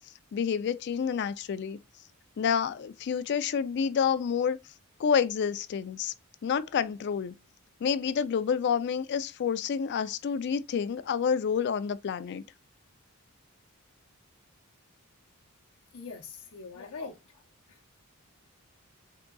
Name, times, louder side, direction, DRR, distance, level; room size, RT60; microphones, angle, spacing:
voice 1, 0.3-1.8 2.4-4.6 5.0-6.1 6.4-7.3 7.8-12.4 16.8-16.9, left 7 dB, 50° left, 0.3 m, -28 dB
voice 2, 15.9-17.2 17.7-17.9, left 4 dB, 85° left, 0.7 m, -42 dB
3.8 x 3.5 x 2.3 m
head